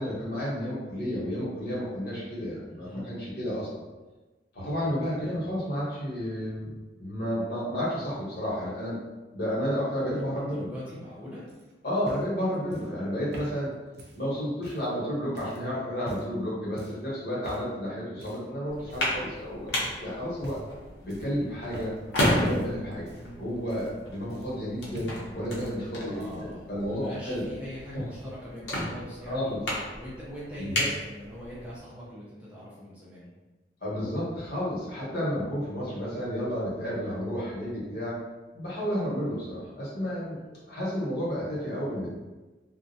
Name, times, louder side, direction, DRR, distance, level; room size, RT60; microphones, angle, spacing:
voice 1, 0.0-3.8 4.5-9.0 9.3-10.7 11.8-13.7 14.1-20.6 21.0-21.9 22.4-23.1 23.4-27.4 29.3-29.6 30.6-30.9 33.8-38.2 38.5-42.1, equal, 60° left, -7 dB, 1.0 m, -31 dB
voice 2, 2.7-3.0 4.8-5.5 9.9-11.5 22.9-23.4 25.9-29.5 29.9-33.3, equal, 5° right, -8 dB, 0.4 m, -43 dB
sound 1, 11.5-14.9 15.4-15.6 16.0-16.4 16.8-17.1 17.4-17.7 18.2-18.5 18.9-19.4 19.7-20.0 20.4-20.8 21.1-22.1 22.4-24.7 24.9-25.8 26.0-26.5 27.5-27.6, equal, 70° right, 0.5 m, -45 dB
sound 2, 18.7-31.8, left 1 dB, 90° left, 0.7 m, -34 dB
2.4 x 2.1 x 2.6 m, 1.2 s
head